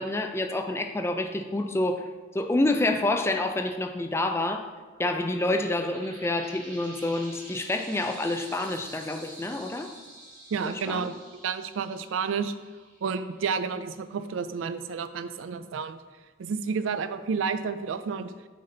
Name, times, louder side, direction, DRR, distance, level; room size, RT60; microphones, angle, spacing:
voice 1, 0.0-4.7 5.0-9.9 10.9-11.1, left 2 dB, 15° left, 5 dB, 0.4 m, -28 dB
sound 1, 4.7-13.8, right 2 dB, 40° right, 1.4 m, -48 dB
voice 2, 10.5-11.1 11.4-12.5 13.0-16.0 16.4-18.3, right 5 dB, 90° right, 11 dB, 0.4 m, -30 dB
6.5 x 4.1 x 3.9 m, 1.3 s
head